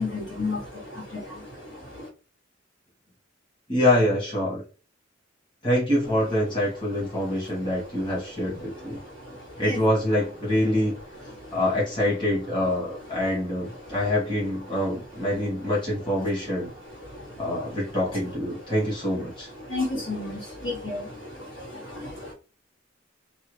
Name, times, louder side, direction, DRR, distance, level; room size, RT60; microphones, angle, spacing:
voice 1, 0.0-2.1 9.0-9.4 9.6-9.8 11.4-11.5 17.1-17.6 19.6-22.3, left 3 dB, 75° left, -3 dB, 1.5 m, -33 dB
voice 2, 3.7-4.6 5.6-9.0 9.6-10.9 11.5-16.7 17.4-19.5, left 1 dB, 25° left, -6 dB, 1.3 m, -25 dB
2.8 x 2.1 x 3.1 m, 0.34 s
head